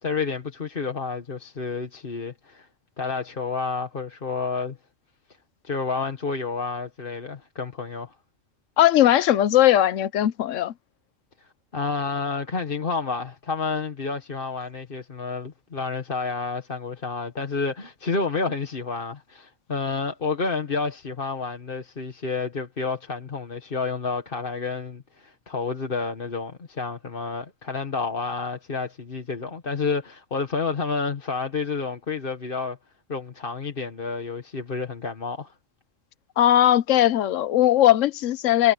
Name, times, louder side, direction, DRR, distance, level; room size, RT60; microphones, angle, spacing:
voice 1, 0.0-2.7 3.0-4.8 5.6-8.1 11.4-32.8 33.1-35.5, left 4 dB, 45° left, 1.6 m, -30 dB
voice 2, 8.8-10.7 36.4-38.7, left 12 dB, 85° left, 1.0 m, -19 dB
omnidirectional pair, 1.3 m